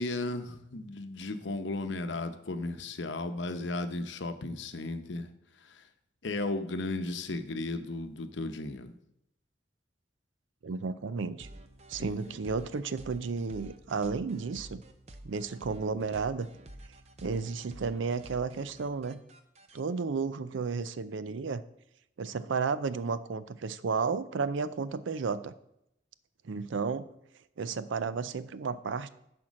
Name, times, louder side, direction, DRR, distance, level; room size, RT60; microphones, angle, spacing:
voice 1, 0.0-5.3 5.6-5.8 6.2-8.9 12.0-12.4, left 2 dB, 75° left, 9 dB, 0.8 m, -35 dB
voice 2, 10.6-11.5 11.9-14.8 15.2-16.5 17.2-19.2 19.7-21.6 22.2-25.5 26.4-27.1 27.6-29.1, right 4 dB, 90° right, 14 dB, 0.5 m, -32 dB
sound 1, 11.4-19.8, right 1 dB, 35° right, 0.7 m, -50 dB
10.5 x 4.4 x 6.2 m, 0.81 s
head